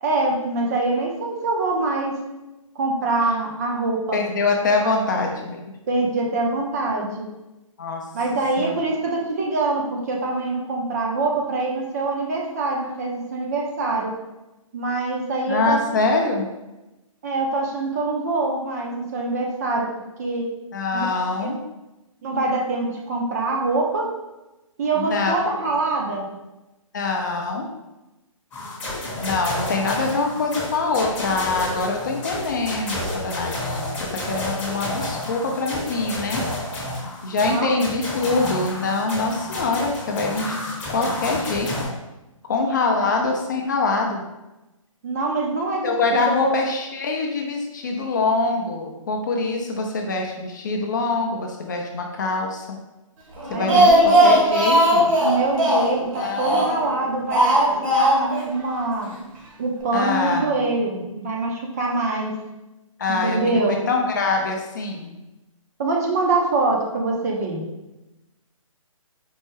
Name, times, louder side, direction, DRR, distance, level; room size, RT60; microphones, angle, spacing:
voice 1, 0.0-2.2 2.8-4.2 4.8-4.9 5.9-7.2 8.1-14.1 14.7-15.8 16.1-16.2 17.2-19.9 20.2-20.5 20.9-21.1 21.4-21.5 22.2-24.1 24.8-26.3 37.3-37.7 43.0-43.1 45.0-45.8 46.1-46.5 53.5-54.4 55.2-59.1 59.6-62.3 63.2-63.8 65.8-67.6, right 3 dB, 30° right, 0 dB, 0.5 m, -24 dB
voice 2, 4.1-5.6 7.8-8.0 8.6-8.7 15.5-16.4 20.7-21.6 25.0-25.4 25.7-25.8 26.9-27.7 29.2-36.4 37.2-40.5 40.9-41.9 42.4-44.2 45.8-52.8 53.5-55.1 56.2-56.6 59.9-60.6 63.0-63.6 63.9-65.1, left 3 dB, 35° left, 2 dB, 0.4 m, -24 dB
sound 1, 28.5-41.8, left 1 dB, 10° left, 0.7 m, -30 dB
Speech, 53.4-56.9 57.3-58.5 58.7-58.8 59.1-59.2, right 1 dB, 70° right, 1.2 m, -18 dB
4.4 x 2.1 x 3.1 m, 1.0 s
hypercardioid pair, 155°, 18 cm